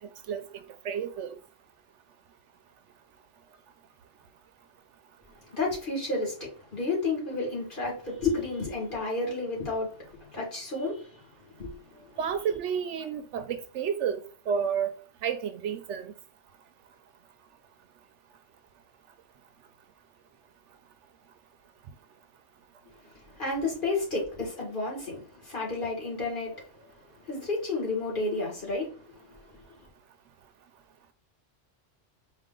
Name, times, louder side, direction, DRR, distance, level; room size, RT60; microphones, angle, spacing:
voice 1, 0.8-1.3 12.2-14.2 14.5-14.9 15.2-16.1, right 7 dB, 75° right, 0.9 m, -30 dB
voice 2, 5.5-11.2 11.6-12.1 23.3-26.6 27.3-29.9, left 3 dB, 45° left, 2.2 m, -32 dB
4.9 x 2.5 x 3.7 m
omnidirectional pair, 1.2 m